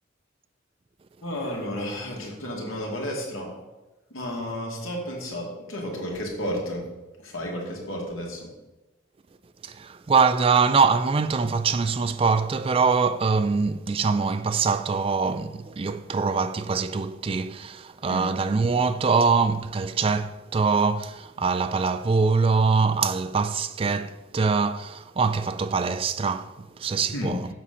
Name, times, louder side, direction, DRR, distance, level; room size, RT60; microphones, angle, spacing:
voice 1, 1.2-3.5 4.1-6.8 7.2-8.5 18.1-18.3 27.1-27.3, equal, 85° left, 2.1 m, -32 dB
voice 2, 9.6-27.5, right 5 dB, 25° right, 0.3 m, -23 dB
7.5 x 4.2 x 6.8 m
head